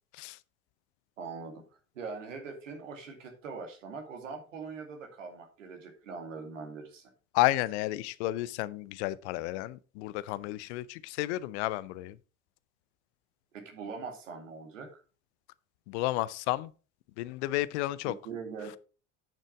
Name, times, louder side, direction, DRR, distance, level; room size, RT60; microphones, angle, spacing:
voice 1, 1.2-1.6 1.9-7.1 13.5-15.0 18.0-18.8, right 5 dB, 75° right, 2.4 m, -42 dB
voice 2, 7.3-12.1 15.9-16.7 17.2-18.1, left 17 dB, 60° left, 0.6 m, -31 dB
9.0 x 6.7 x 4.7 m
figure-of-eight pair, 60°, 38 cm